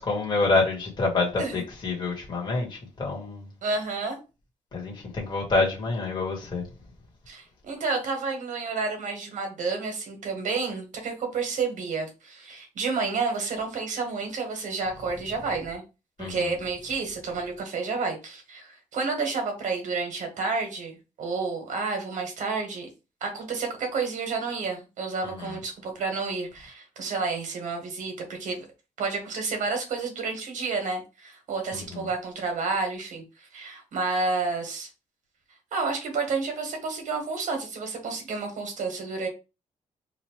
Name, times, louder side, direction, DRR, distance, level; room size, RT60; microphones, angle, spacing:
voice 1, 0.0-3.4 4.7-6.6 16.2-16.4 25.4-25.5 31.7-31.8, left 3 dB, 35° left, 1.4 m, -27 dB
voice 2, 3.6-4.2 7.3-15.8 16.3-22.9 23.2-28.6 29.0-34.9 35.7-39.3, right 4 dB, 75° right, 1.3 m, -30 dB
3.2 x 2.4 x 4.3 m
wide cardioid pair, 155°, 13 cm